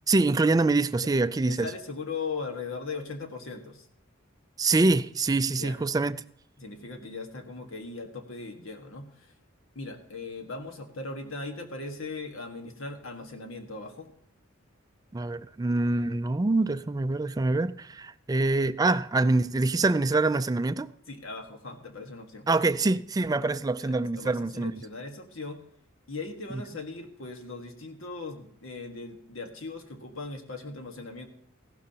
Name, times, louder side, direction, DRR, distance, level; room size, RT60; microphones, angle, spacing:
voice 1, 0.1-1.7 4.6-6.2 15.1-20.9 22.5-24.7, right 3 dB, 20° right, 0.3 m, -25 dB
voice 2, 1.5-3.9 5.6-5.8 6.6-9.4 9.7-14.1 21.1-22.5 23.8-25.6 26.1-31.3, left 3 dB, 75° left, 1.5 m, -39 dB
15.5 x 12.0 x 2.9 m
head